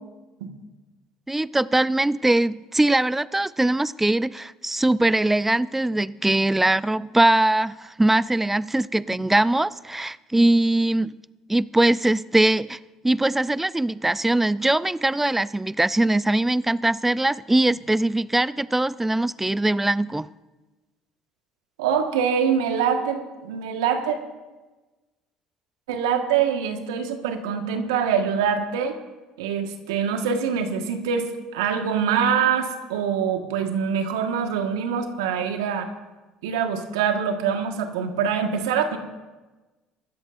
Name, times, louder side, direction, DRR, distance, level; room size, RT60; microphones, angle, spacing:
voice 1, 1.3-11.1 11.5-12.8 13.0-20.3, right 1 dB, 10° right, 0.5 m, -21 dB
voice 2, 21.8-24.2 25.9-29.0 29.4-35.9 36.4-39.0, right 7 dB, 85° right, 1.6 m, -24 dB
24.5 x 13.0 x 2.6 m
hypercardioid pair, 65°, 2 cm